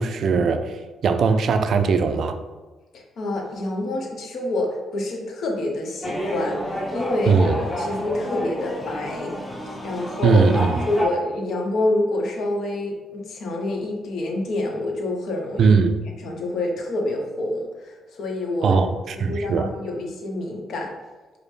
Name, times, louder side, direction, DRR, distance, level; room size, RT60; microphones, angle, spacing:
voice 1, 0.0-2.4 7.3-7.5 10.2-10.8 15.6-15.9 18.6-19.7, right 5 dB, 60° right, 8 dB, 0.3 m, -19 dB
voice 2, 2.9-9.3 9.8-10.5 10.8-15.7 16.2-20.9, left 2 dB, 65° left, 1 dB, 0.8 m, -27 dB
sound 1, 6.0-11.1, equal, 20° left, 0.8 m, -29 dB
4.9 x 2.0 x 3.2 m, 1.3 s
cardioid pair, 90°, 0 cm